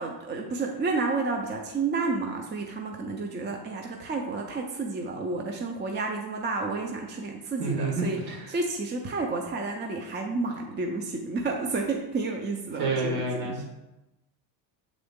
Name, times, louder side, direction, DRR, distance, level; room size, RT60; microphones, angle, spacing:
voice 1, 0.0-13.7, right 3 dB, 25° right, 2 dB, 0.5 m, -31 dB
voice 2, 7.6-8.4 12.8-13.6, right 2 dB, 55° right, -1 dB, 1.9 m, -29 dB
6.9 x 3.8 x 3.6 m, 0.99 s
cardioid pair, 130°, 46 cm